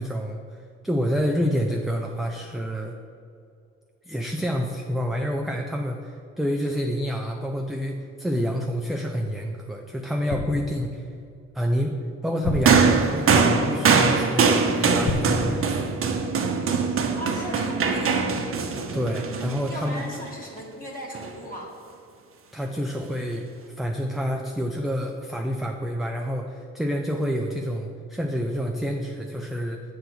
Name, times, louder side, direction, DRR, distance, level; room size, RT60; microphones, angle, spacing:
voice 1, 0.0-3.0 4.1-11.1 11.5-16.0 18.9-20.1 22.5-29.8, equal, ahead, 2 dB, 0.4 m, -28 dB
sound 1, 10.3-11.0 12.4-13.4 15.1-16.2 16.4-16.7, left 2 dB, 65° left, 1.0 m, -31 dB
sound 2, 12.7-20.2 21.2-21.3, right 5 dB, 45° right, 0.7 m, -22 dB
voice 2, 17.2-18.4 19.7-21.7, equal, 30° left, -2 dB, 1.3 m, -36 dB
7.5 x 3.4 x 6.0 m, 2.4 s
cardioid pair, 90°, 30 cm